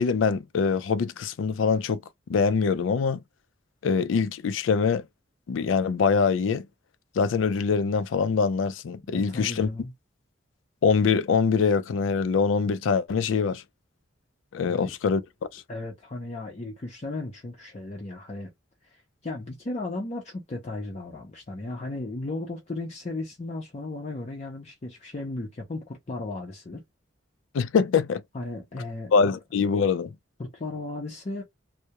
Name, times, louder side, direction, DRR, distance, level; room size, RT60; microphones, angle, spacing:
voice 1, 0.0-2.0 2.3-3.2 3.8-5.0 5.5-6.7 7.2-9.7 10.8-13.6 14.5-15.2 15.5-15.6 27.5-28.2 29.1-30.1, left 5 dB, 90° left, 0.4 m, -24 dB
voice 2, 9.1-9.9 14.7-14.9 15.7-18.5 18.8-26.8 28.3-29.4 30.4-31.4, left 2 dB, 35° left, 0.5 m, -35 dB
2.3 x 2.0 x 2.8 m
head